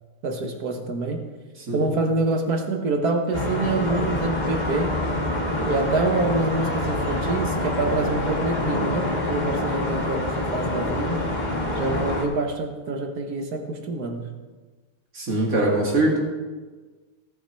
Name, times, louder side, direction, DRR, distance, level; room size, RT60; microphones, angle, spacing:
voice 1, 0.2-1.2 1.7-5.0 5.7-11.2 11.8-14.3, right 3 dB, 90° right, 4 dB, 1.8 m, -26 dB
sound 1, 3.3-12.3, left 1 dB, 30° left, 2.0 m, -26 dB
voice 2, 15.1-16.2, right 2 dB, 65° right, -3 dB, 3.0 m, -22 dB
17.0 x 7.2 x 4.7 m, 1.3 s
omnidirectional pair, 1.6 m